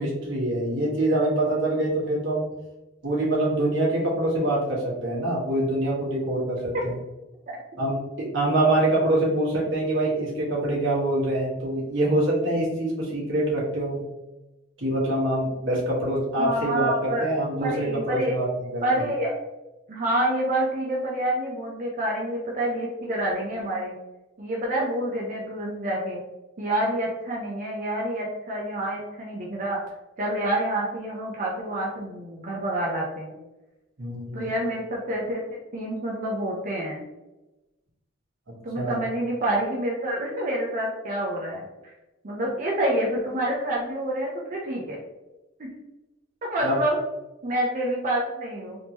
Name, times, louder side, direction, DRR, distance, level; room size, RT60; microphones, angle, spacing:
voice 1, 0.0-2.5 3.0-7.0 7.8-8.0 8.3-14.0 14.8-18.8 34.0-34.5 38.7-39.0 46.6-46.8, right 1 dB, 80° right, -5 dB, 1.5 m, -25 dB
voice 2, 16.4-17.3 17.6-18.4 18.8-19.4 19.9-24.0 24.4-26.2 26.6-29.8 30.2-33.4 34.3-37.1 38.6-41.9 42.2-45.0 45.6-45.7 46.5-47.0 47.4-48.8, right 1 dB, 45° right, -3 dB, 0.6 m, -28 dB
3.5 x 2.9 x 2.9 m, 1.0 s
head